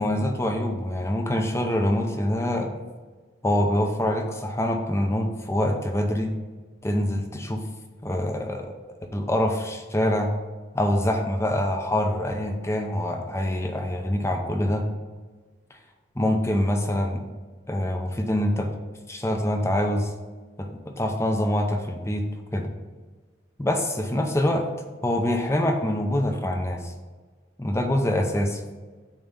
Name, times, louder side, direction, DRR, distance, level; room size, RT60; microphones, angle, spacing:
voice 1, 0.0-2.7 3.4-6.3 6.8-7.6 8.0-8.7 9.1-10.3 10.7-14.8 16.2-17.2 17.7-18.7 19.1-20.1 20.6-22.2 22.5-22.7 23.6-24.7 25.0-26.9 27.6-28.6, left 1 dB, 15° left, 3 dB, 0.6 m, -25 dB
8.8 x 3.4 x 5.5 m, 1.4 s
head